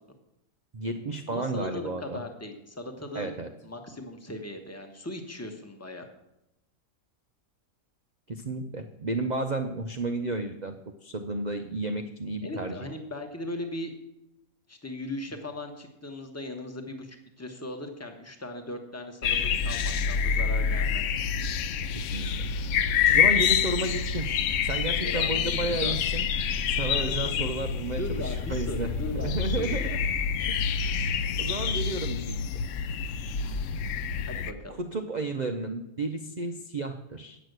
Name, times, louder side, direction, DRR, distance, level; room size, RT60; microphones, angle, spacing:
voice 1, 0.7-2.2 3.1-3.5 8.3-10.8 11.0-12.9 21.9-22.5 23.1-24.3 24.6-26.3 26.7-30.0 30.5-30.6 31.4-32.6 34.8-37.4, right 2 dB, 70° right, 6 dB, 0.4 m, -32 dB
voice 2, 1.3-3.3 3.6-6.1 12.4-13.9 14.7-21.0 25.0-26.0 27.0-27.2 27.9-30.0 34.2-34.8, left 1 dB, 10° left, 4 dB, 1.0 m, -38 dB
sound 1, 19.2-34.5, left 7 dB, 65° left, 0.8 m, -27 dB
9.0 x 6.3 x 7.9 m, 0.86 s
omnidirectional pair, 1.7 m